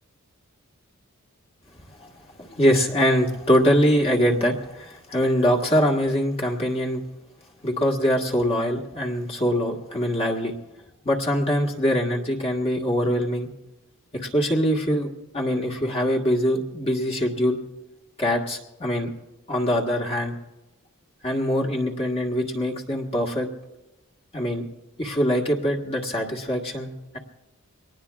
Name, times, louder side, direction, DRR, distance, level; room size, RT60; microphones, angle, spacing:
voice 1, 2.4-7.0 7.6-10.5 11.0-13.5 14.3-17.6 18.2-19.1 19.5-20.3 21.2-23.5 24.3-24.6 25.0-27.2, equal, 25° left, 0 dB, 1.5 m, -23 dB
23.5 x 18.5 x 2.4 m, 0.97 s
head